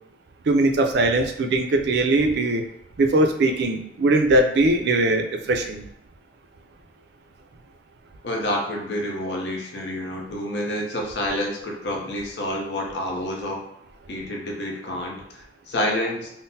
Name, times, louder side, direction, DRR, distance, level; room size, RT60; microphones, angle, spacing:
voice 1, 0.5-2.6 3.0-5.8, right 2 dB, 70° right, 5 dB, 0.4 m, -20 dB
voice 2, 8.2-13.7 14.1-16.3, left 1 dB, 70° left, 0 dB, 0.7 m, -28 dB
3.7 x 2.0 x 2.6 m, 0.75 s
head